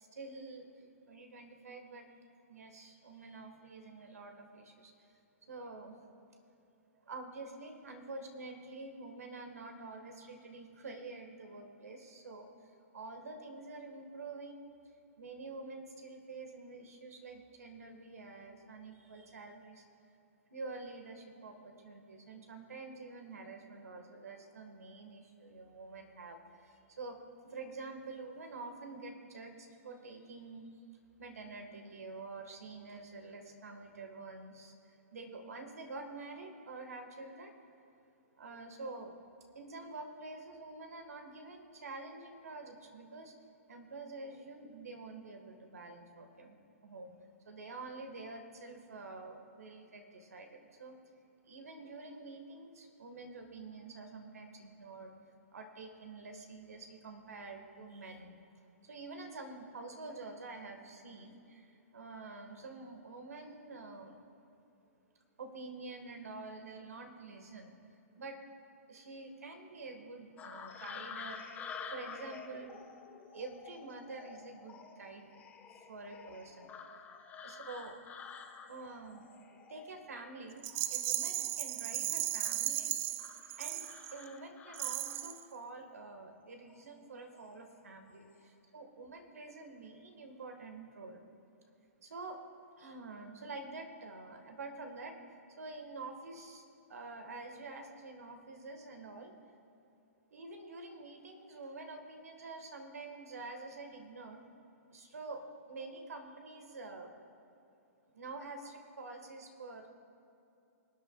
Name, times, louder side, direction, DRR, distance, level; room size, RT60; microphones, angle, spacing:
voice 1, 0.0-2.1 2.5-4.9 5.4-6.0 7.0-14.7 15.2-19.8 20.5-27.2 27.4-30.6 31.2-37.5 38.4-39.1 39.5-43.3 43.7-46.5 46.8-47.1 47.4-51.0 51.4-55.1 55.5-58.3 58.8-64.2 65.4-67.7 68.2-68.4 68.9-71.4 71.9-72.8 73.3-75.3 75.9-76.7 77.4-78.0 78.7-79.3 79.7-82.9 83.6-91.2 92.0-92.4 92.8-96.6 96.9-99.3 100.3-104.4 104.9-105.4 105.7-107.1 108.1-109.9, right 3 dB, 85° right, 4 dB, 1.6 m, -47 dB
sound 1, 70.4-80.4 80.7-82.6 83.2-85.4 86.6-86.9 87.3-87.8 88.1-88.4, left 6 dB, 20° left, 1.2 m, -50 dB
Rattle, 80.6-84.3 84.7-85.4, right 14 dB, 25° right, 0.3 m, -36 dB
26.0 x 8.7 x 2.4 m, 2.8 s
hypercardioid pair, 130°, 8 cm